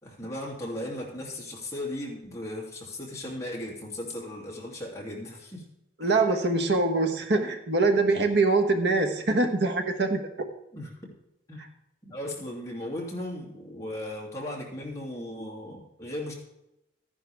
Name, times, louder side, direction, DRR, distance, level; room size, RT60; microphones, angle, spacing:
voice 1, 0.0-5.7 6.0-6.2 10.7-11.0 11.5-11.6 12.0-16.3, left 1 dB, 15° left, -3 dB, 2.7 m, -37 dB
voice 2, 6.0-10.5, right 3 dB, 75° right, 6 dB, 1.3 m, -24 dB
13.5 x 10.0 x 3.5 m, 0.88 s
head